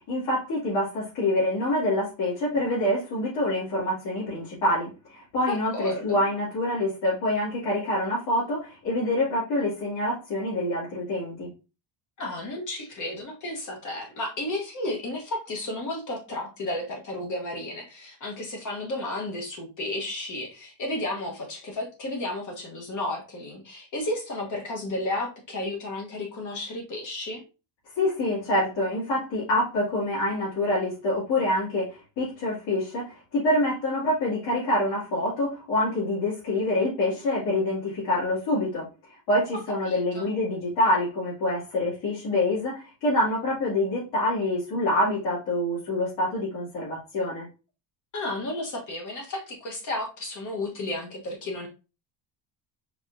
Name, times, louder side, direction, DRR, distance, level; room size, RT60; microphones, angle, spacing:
voice 1, 0.1-11.5 28.0-47.5, left 1 dB, 55° left, -10 dB, 2.4 m, -26 dB
voice 2, 5.5-6.2 12.2-27.4 39.5-40.3 48.1-51.7, left 2 dB, 35° left, 0 dB, 1.3 m, -33 dB
4.8 x 3.5 x 2.6 m, 0.32 s
cardioid pair, 145°, 50 cm